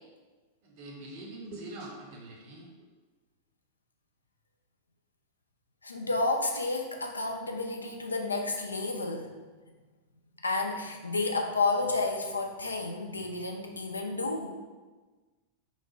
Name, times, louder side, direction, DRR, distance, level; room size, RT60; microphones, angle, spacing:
voice 1, 0.6-2.7, right 2 dB, 45° right, -1 dB, 0.7 m, -43 dB
voice 2, 5.8-9.4 10.4-14.6, left 3 dB, 80° left, 2 dB, 0.4 m, -31 dB
3.0 x 2.1 x 3.8 m, 1.3 s
figure-of-eight pair, 90°, 0 cm